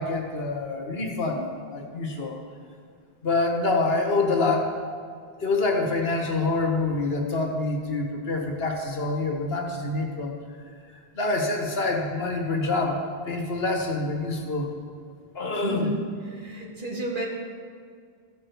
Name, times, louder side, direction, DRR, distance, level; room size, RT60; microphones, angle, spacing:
voice 1, 0.0-2.4 3.2-4.7 5.4-10.4 11.1-14.7 15.3-15.9, left 3 dB, 75° left, 2 dB, 1.6 m, -26 dB
voice 2, 15.6-17.3, right 1 dB, 55° right, -1 dB, 1.9 m, -31 dB
14.0 x 5.9 x 7.0 m, 2.1 s
omnidirectional pair, 1.0 m